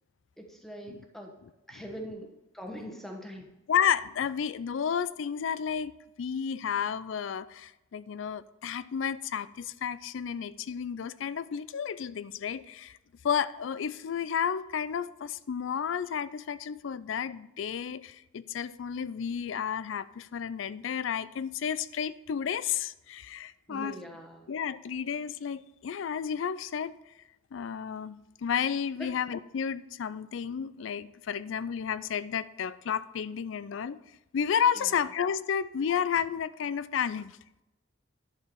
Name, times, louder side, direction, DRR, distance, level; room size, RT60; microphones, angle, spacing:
voice 1, 0.4-1.4 1.7-3.5 23.7-24.5 29.0-29.1 34.7-34.9, equal, ahead, 2 dB, 1.1 m, -42 dB
voice 2, 3.7-13.0 13.2-24.0 24.5-26.9 27.5-34.0 34.3-37.4, left 7 dB, 75° left, 17 dB, 0.4 m, -32 dB
11.0 x 4.6 x 6.9 m, 0.94 s
head